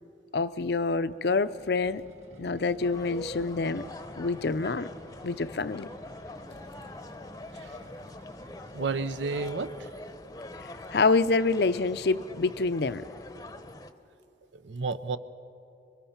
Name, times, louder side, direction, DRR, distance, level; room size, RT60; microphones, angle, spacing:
voice 1, 0.3-2.0 2.4-3.9 4.2-4.9 5.2-5.9 10.6-13.0, left 3 dB, 65° left, 13 dB, 0.6 m, -27 dB
sound 1, 1.1-10.2, equal, 35° right, 1.8 m, -53 dB
sound 2, 2.8-13.9, left 1 dB, 20° left, 0.8 m, -44 dB
voice 2, 8.7-9.9 14.5-15.2, right 4 dB, 85° right, 13 dB, 0.7 m, -32 dB
26.0 x 23.5 x 5.8 m, 2.9 s
head